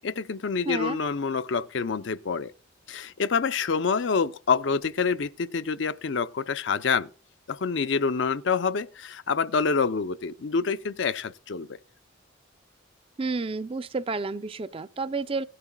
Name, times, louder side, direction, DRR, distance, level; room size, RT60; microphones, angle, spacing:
voice 1, 0.0-2.5 2.9-7.1 7.5-11.7, left 5 dB, 65° left, 0.5 m, -27 dB
voice 2, 0.7-1.0 13.2-15.4, right 3 dB, 30° right, 0.4 m, -30 dB
17.5 x 11.0 x 2.2 m
head